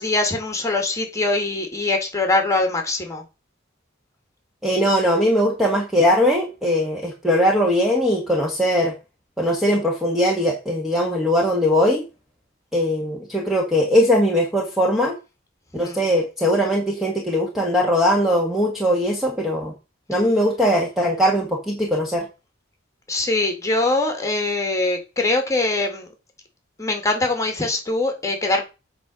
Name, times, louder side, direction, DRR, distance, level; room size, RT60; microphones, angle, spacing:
voice 1, 0.0-3.2 15.8-16.0 23.1-26.1 26.8-28.6, left 2 dB, 15° left, 2.2 m, -22 dB
voice 2, 4.6-8.9 9.4-12.0 12.7-15.1 15.7-19.7 20.1-22.3, equal, ahead, 1.5 m, -20 dB
8.2 x 4.0 x 6.2 m
head